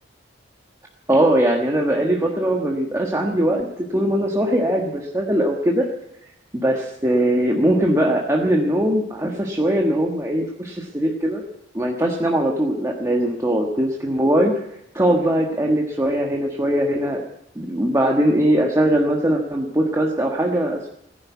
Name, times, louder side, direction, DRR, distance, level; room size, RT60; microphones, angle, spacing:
voice 1, 1.1-5.9 6.5-11.4 11.7-17.2 17.5-20.9, right 1 dB, 15° right, 0 dB, 1.4 m, -20 dB
16.0 x 10.5 x 8.3 m, 0.80 s
head